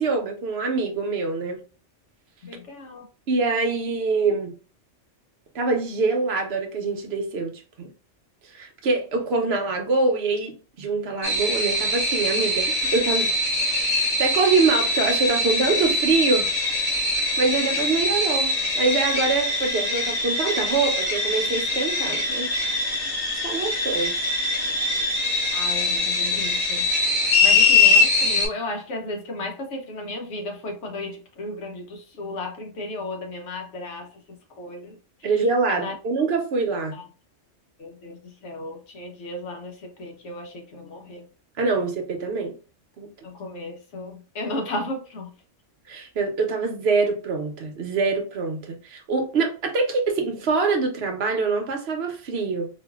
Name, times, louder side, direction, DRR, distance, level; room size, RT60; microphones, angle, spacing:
voice 1, 0.0-1.6 3.3-4.5 5.5-7.9 8.5-13.3 13.9-16.5 17.4-22.5 23.4-24.2 35.2-37.0 41.6-42.5 43.0-43.1 45.9-52.7, right 4 dB, 60° right, 1.0 m, -24 dB
voice 2, 2.4-3.1 25.5-26.9 27.1-35.0 35.7-35.9 36.9-37.0 37.8-41.2 43.2-45.3, left 2 dB, 70° left, 1.2 m, -34 dB
sound 1, 11.2-28.5, left 2 dB, 25° left, 1.3 m, -23 dB
4.4 x 2.5 x 2.3 m
omnidirectional pair, 1.3 m